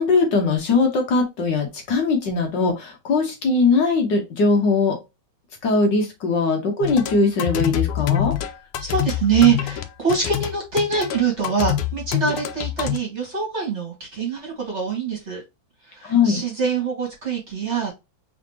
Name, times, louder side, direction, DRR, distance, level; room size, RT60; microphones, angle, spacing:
voice 1, 0.0-4.9 5.6-8.3 16.0-16.4, left 4 dB, 60° left, 2 dB, 1.7 m, -20 dB
sound 1, 6.8-13.0, left 11 dB, 90° left, 1.6 m, -26 dB
voice 2, 8.8-15.4 15.9-17.9, right 6 dB, 35° right, -2 dB, 2.0 m, -24 dB
4.1 x 4.0 x 2.8 m, 0.24 s
omnidirectional pair, 2.3 m